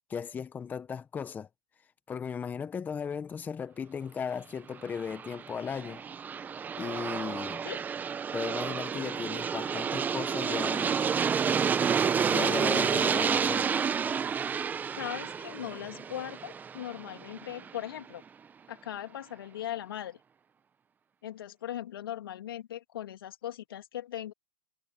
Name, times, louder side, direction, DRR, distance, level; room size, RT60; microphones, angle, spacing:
voice 1, 0.1-1.5 2.1-6.0 6.8-7.6 8.3-11.1 12.3-13.7, left 6 dB, 15° left, 1.3 m, -36 dB
Aircraft, 4.9-17.7, right 7 dB, 15° right, 1.0 m, -30 dB
voice 2, 14.9-18.2 18.7-20.2 21.2-24.3, left 11 dB, 70° left, 2.7 m, -39 dB
hypercardioid pair, 135°, 12 cm